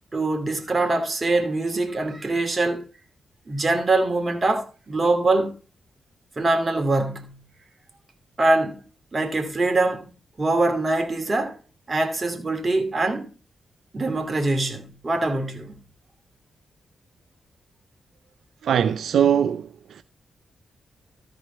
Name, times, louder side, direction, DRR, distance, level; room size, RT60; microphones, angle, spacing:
voice 1, 0.1-2.8 3.5-5.5 6.4-7.4 8.4-8.8 9.1-11.6 11.9-13.3 13.9-15.8, right 2 dB, 35° right, 2.6 m, -23 dB
voice 2, 18.6-19.7 20.0-20.1, right 8 dB, 80° right, 0.4 m, -20 dB
14.0 x 5.0 x 5.5 m
cardioid pair, 70°, 0 cm